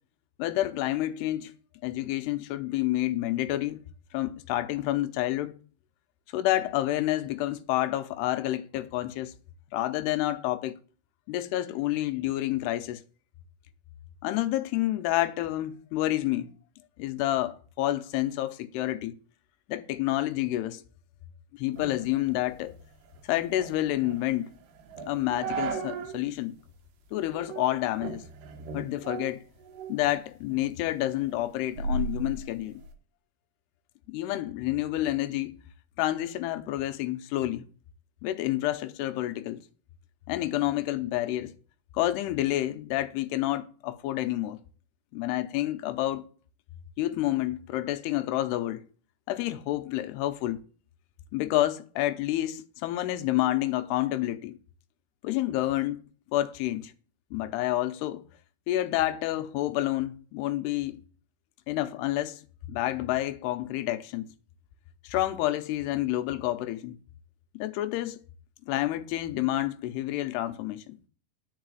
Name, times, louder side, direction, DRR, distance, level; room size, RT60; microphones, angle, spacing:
voice 1, 0.4-1.5 1.8-3.8 4.1-5.6 6.3-9.3 9.7-10.8 11.3-13.0 14.2-16.5 17.0-19.2 19.7-20.8 21.5-22.8 23.3-24.6 25.0-26.5 27.1-28.2 28.7-29.4 29.9-32.8 34.1-35.5 36.0-37.7 38.2-39.6 40.3-41.5 41.9-44.6 45.1-46.2 47.0-48.8 49.3-50.6 51.3-54.6 55.2-56.0 56.3-56.9 57.3-58.2 58.7-61.0 61.7-62.4 62.7-64.3 65.0-67.0 67.5-68.2 68.7-71.0, left 15 dB, 85° left, 2.8 m, -29 dB
sound 1, 21.8-26.2 26.6-26.7 27.3-27.7 28.0-30.1 30.5-32.9, right 4 dB, 85° right, 3.4 m, -37 dB
10.5 x 4.8 x 7.8 m
omnidirectional pair, 4.7 m